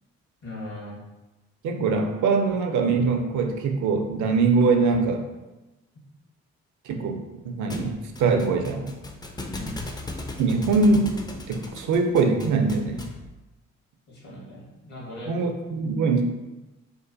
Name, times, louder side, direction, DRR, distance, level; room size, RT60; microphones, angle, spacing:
voice 1, 0.4-1.0 9.5-9.8 14.1-15.3, left 1 dB, 65° left, -5 dB, 1.3 m, -38 dB
voice 2, 1.6-5.2 6.9-8.9 10.4-11.2 11.5-13.0 15.3-16.2, right 4 dB, 65° right, 4 dB, 0.5 m, -23 dB
Thump thud, 7.7-13.3, left 2 dB, 15° left, 0.3 m, -38 dB
2.9 x 2.1 x 2.6 m, 1.1 s
supercardioid pair, 45°, 32 cm